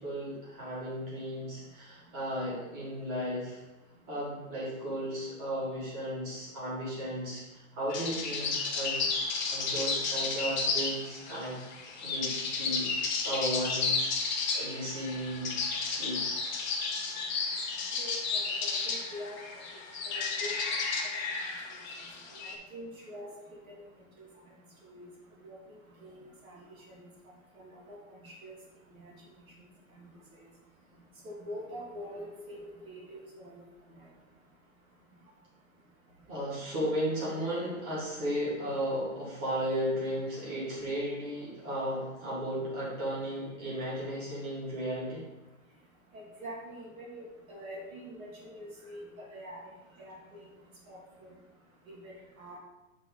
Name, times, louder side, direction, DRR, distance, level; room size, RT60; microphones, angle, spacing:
voice 1, 0.0-3.6 4.1-9.1 9.5-11.6 12.0-15.5 15.8-16.2 36.3-45.2, equal, 25° right, -7 dB, 1.9 m, -35 dB
sound 1, 7.9-22.5, left 4 dB, 35° left, 0.9 m, -32 dB
voice 2, 18.0-19.4 20.1-20.5 22.3-23.3 24.2-24.3 24.9-25.1 25.4-25.6 26.0-26.6 27.6-28.0 28.2-28.5 31.2-33.6 46.1-49.0 49.3-49.6 50.0-50.4 50.9-51.3 51.9-52.6, equal, 75° right, -3 dB, 2.0 m, -44 dB
8.2 x 3.5 x 3.7 m, 1.1 s
hypercardioid pair, 170°, 42 cm